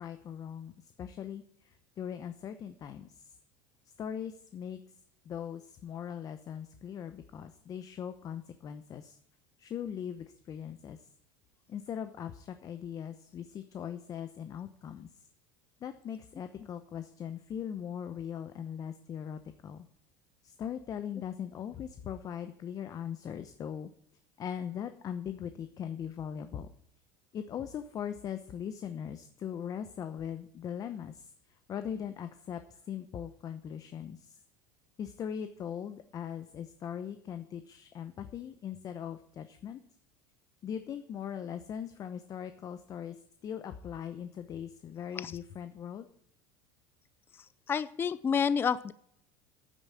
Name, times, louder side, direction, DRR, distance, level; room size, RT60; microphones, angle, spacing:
voice 1, 0.0-3.4 4.0-4.8 5.2-9.2 9.6-11.1 11.7-15.1 15.8-19.9 20.4-23.9 24.4-26.7 27.3-32.6 32.9-34.4 35.0-39.8 40.6-43.2 43.4-46.1, left 8 dB, 35° left, 9 dB, 0.9 m, -40 dB
voice 2, 47.7-48.9, left 6 dB, 20° left, 16 dB, 0.5 m, -29 dB
9.4 x 9.0 x 7.5 m, 0.66 s
supercardioid pair, 115°, 10 cm